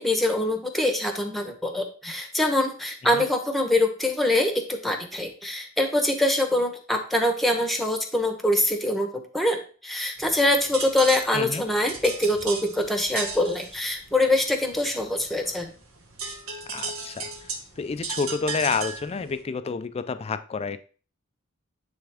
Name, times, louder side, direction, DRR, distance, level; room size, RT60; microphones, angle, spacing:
voice 1, 0.0-4.5 4.8-9.1 9.3-15.7, left 1 dB, ahead, 5 dB, 1.0 m, -24 dB
sound 1, 10.2-19.4, right 4 dB, 80° right, 1.6 m, -36 dB
voice 2, 16.7-20.8, left 5 dB, 30° left, 11 dB, 0.4 m, -29 dB
10.5 x 3.5 x 3.5 m, 0.40 s
head